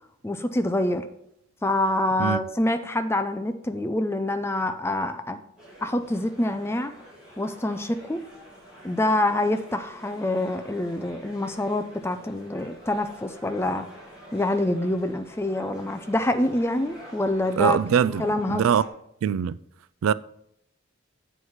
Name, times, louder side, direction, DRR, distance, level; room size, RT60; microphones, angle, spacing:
voice 1, 0.2-1.1 1.6-5.4 5.8-6.9 7.4-8.2 8.8-13.9 14.3-17.8 18.2-18.6, left 1 dB, 10° left, 0.4 m, -26 dB
sound 1, 5.6-18.9, equal, 5° right, 2.7 m, -47 dB
voice 2, 17.6-18.8 19.2-19.6 20.0-20.1, right 8 dB, 85° right, 0.3 m, -22 dB
8.0 x 4.7 x 5.7 m
head